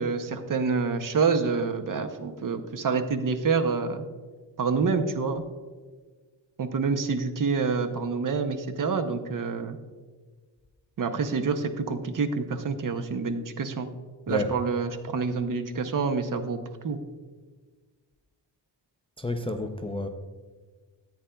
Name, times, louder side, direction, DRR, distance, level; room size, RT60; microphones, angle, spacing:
voice 1, 0.0-4.0 4.6-5.4 6.6-9.8 11.0-13.9 14.3-16.6 16.8-17.0, right 5 dB, 50° right, 8 dB, 0.7 m, -27 dB
voice 2, 19.2-20.1, left 1 dB, 15° left, 5 dB, 0.3 m, -30 dB
14.0 x 8.6 x 2.2 m, 1.4 s
wide cardioid pair, 165°, 43 cm